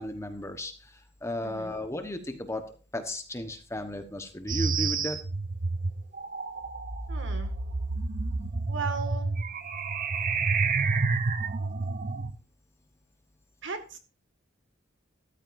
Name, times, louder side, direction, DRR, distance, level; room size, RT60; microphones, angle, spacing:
voice 1, 0.0-2.7 2.9-5.2, left 1 dB, 15° left, 6 dB, 1.2 m, -35 dB
voice 2, 1.4-1.7 7.1-7.5 8.7-9.3 13.6-14.0, right 4 dB, 60° right, 6 dB, 2.1 m, -36 dB
sound 1, 4.5-12.3, right 4 dB, 40° right, 0.8 m, -29 dB
14.0 x 12.5 x 2.7 m, 0.36 s
head